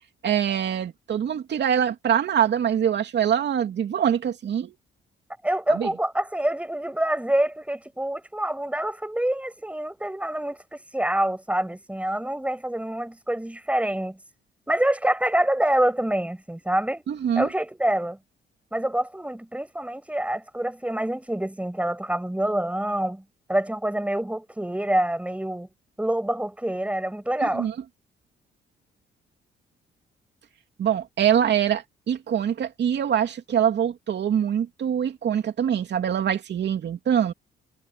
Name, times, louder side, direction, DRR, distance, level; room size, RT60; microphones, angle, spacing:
voice 1, 0.2-4.7 5.7-5.9 17.1-17.5 27.4-27.7 30.8-37.3, right 9 dB, 60° right, 2.9 m, -24 dB
voice 2, 5.4-14.2 14.7-17.0 17.4-18.2 18.7-23.2 23.5-25.7 26.0-27.7, right 1 dB, 5° right, 5.7 m, -26 dB
cardioid pair, 90°, 20 cm